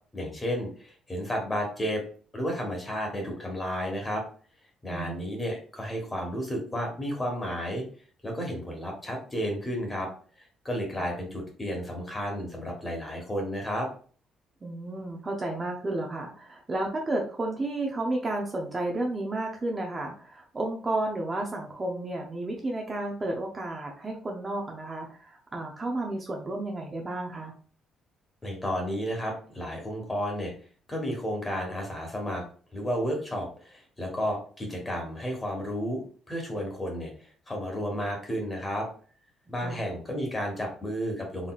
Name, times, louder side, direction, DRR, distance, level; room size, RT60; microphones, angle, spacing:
voice 1, 0.1-2.0 2.3-4.2 4.8-7.8 8.2-10.1 10.4-13.9 28.4-30.5 30.9-32.4 32.7-38.9 39.5-41.5, equal, 15° left, 1 dB, 1.2 m, -32 dB
voice 2, 4.9-5.2 11.0-11.1 14.6-27.5 39.6-39.8, right 2 dB, 20° right, 0 dB, 0.6 m, -32 dB
4.0 x 3.3 x 2.3 m, 0.42 s
cardioid pair, 140°, 0 cm